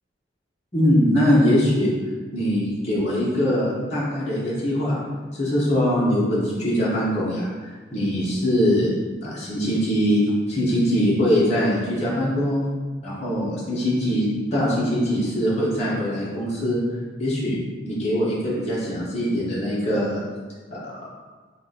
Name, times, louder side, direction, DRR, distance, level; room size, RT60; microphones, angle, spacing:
voice 1, 0.7-1.9 2.3-5.0 5.3-8.9 9.2-12.6 13.0-16.8 17.2-17.6 17.9-20.2 20.7-20.8, equal, 35° left, -7 dB, 1.0 m, -22 dB
3.8 x 2.5 x 3.8 m, 1.4 s
head